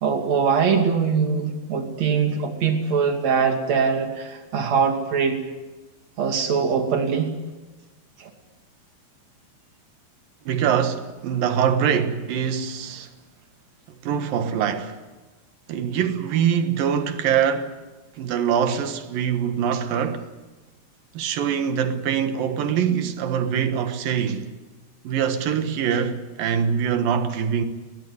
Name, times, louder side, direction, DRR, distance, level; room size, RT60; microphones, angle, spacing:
voice 1, 0.0-5.4 6.2-7.3 8.2-8.3, right 6 dB, 45° right, 3.3 m, -22 dB
voice 2, 10.5-13.1 14.0-15.0 15.7-17.8 18.2-20.3 21.1-24.5 25.0-27.6, right 8 dB, 65° right, 2.9 m, -23 dB
21.0 x 20.0 x 9.6 m
omnidirectional pair, 4.8 m